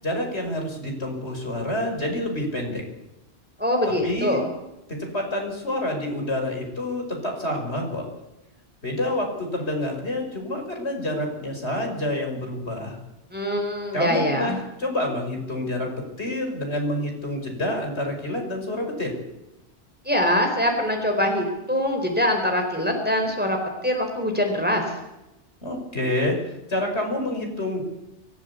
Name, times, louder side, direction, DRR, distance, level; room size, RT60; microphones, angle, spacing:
voice 1, 0.0-2.8 3.8-4.5 4.9-8.1 8.8-13.0 13.9-15.9 16.2-19.1 25.6-27.8, left 1 dB, 70° left, 2 dB, 5.9 m, -28 dB
voice 2, 3.6-4.4 13.3-14.6 20.1-24.8, left 1 dB, 10° right, 3 dB, 4.4 m, -23 dB
24.5 x 15.0 x 8.5 m, 0.94 s
omnidirectional pair, 1.2 m